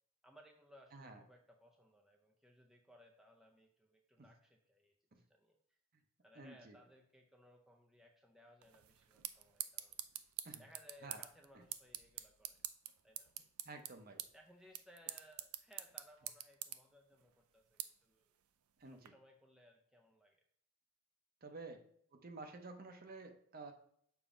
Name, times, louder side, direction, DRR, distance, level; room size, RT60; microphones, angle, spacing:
voice 1, 0.2-4.9 5.3-5.8 6.2-10.0 10.6-12.6 13.0-13.3 14.3-18.3 18.9-20.4 21.4-21.5, equal, ahead, 0 dB, 0.4 m, -64 dB
voice 2, 6.4-6.8 10.4-10.6 11.0-11.2 11.5-11.6 13.6-14.2 18.8-19.1 21.4-21.8 22.1-23.7, right 3 dB, 40° right, 6 dB, 0.7 m, -51 dB
sound 1, 8.6-19.1, right 13 dB, 85° right, 0.4 m, -49 dB
7.0 x 2.7 x 4.9 m, 0.67 s
head